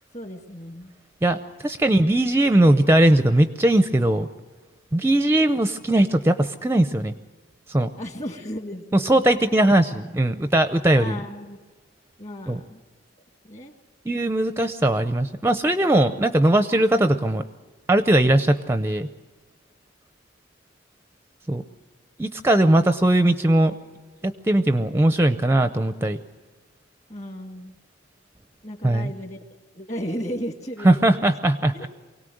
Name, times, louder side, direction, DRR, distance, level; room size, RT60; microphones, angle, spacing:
voice 1, 0.1-0.9 8.0-9.2 10.9-11.6 12.2-12.8 13.4-13.7 27.1-27.8 28.6-29.4 29.7-31.3 31.7-31.9, equal, 35° left, 6 dB, 2.2 m, -35 dB
voice 2, 1.2-4.3 4.9-7.1 7.7-7.9 8.9-11.2 12.5-12.6 14.1-17.4 17.9-19.1 21.5-21.6 22.2-23.7 24.2-26.2 28.8-29.1 30.8-31.9, right 1 dB, 15° right, 10 dB, 0.6 m, -19 dB
24.5 x 18.0 x 7.8 m, 1.3 s
head